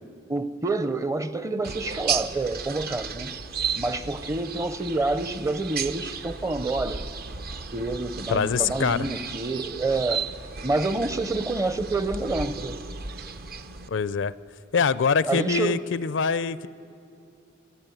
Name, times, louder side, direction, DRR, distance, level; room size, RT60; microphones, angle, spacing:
voice 1, 0.3-3.4 3.7-7.1 7.7-10.3 10.6-12.8 15.2-15.8, right 2 dB, 15° right, 0.6 m, -28 dB
sound 1, 1.6-13.9, right 6 dB, 55° right, 0.8 m, -34 dB
voice 2, 8.3-9.1 13.9-14.3 14.7-16.7, left 6 dB, 70° left, 0.5 m, -24 dB
26.0 x 11.5 x 9.1 m
head